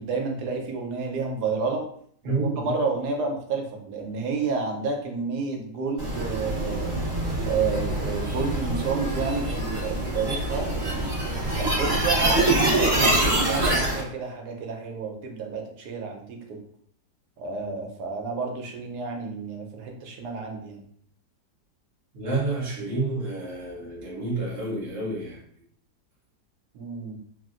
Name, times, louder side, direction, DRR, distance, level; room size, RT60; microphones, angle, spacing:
voice 1, 0.0-1.8 2.2-7.0 7.5-10.7 11.6-16.6 17.4-20.8 26.7-27.2, right 4 dB, 75° right, 2 dB, 1.2 m, -30 dB
voice 2, 2.2-2.7 22.1-25.4, right 2 dB, 55° right, -3 dB, 1.2 m, -29 dB
sound 1, 6.0-14.0, right 1 dB, 30° right, 1.3 m, -25 dB
3.3 x 2.5 x 2.4 m, 0.62 s
omnidirectional pair, 1.8 m